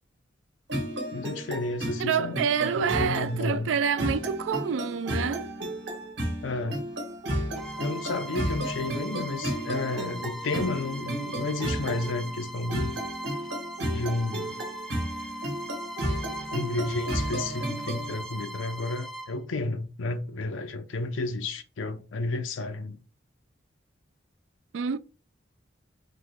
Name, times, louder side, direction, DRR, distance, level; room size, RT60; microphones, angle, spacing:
sound 1, 0.7-18.1, right 1 dB, 65° right, 1.3 m, -33 dB
voice 1, 1.1-3.7 6.4-6.8 7.8-12.9 13.8-14.6 16.5-23.0, left 2 dB, 85° left, 0.5 m, -32 dB
voice 2, 2.0-5.5 24.7-25.0, right 7 dB, 80° right, 0.3 m, -27 dB
Bowed string instrument, 7.6-19.4, right 1 dB, ahead, 0.4 m, -40 dB
3.9 x 3.0 x 3.5 m
head